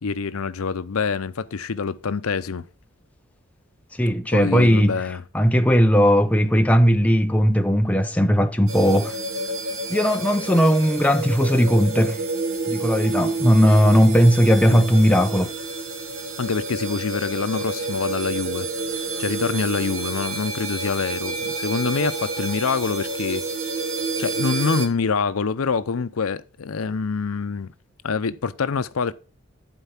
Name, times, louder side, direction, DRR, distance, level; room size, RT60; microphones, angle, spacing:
voice 1, 0.0-2.7 4.3-5.2 13.4-13.5 14.7-14.8 16.4-18.7 19.2-23.6 24.2-27.7 28.0-29.1, left 5 dB, 90° left, 0.6 m, -25 dB
voice 2, 4.0-4.9 5.3-9.1 9.9-12.2 12.7-15.5, equal, 5° left, 0.5 m, -17 dB
sound 1, 8.7-24.9, right 3 dB, 85° right, 1.5 m, -29 dB
11.5 x 4.6 x 5.8 m
head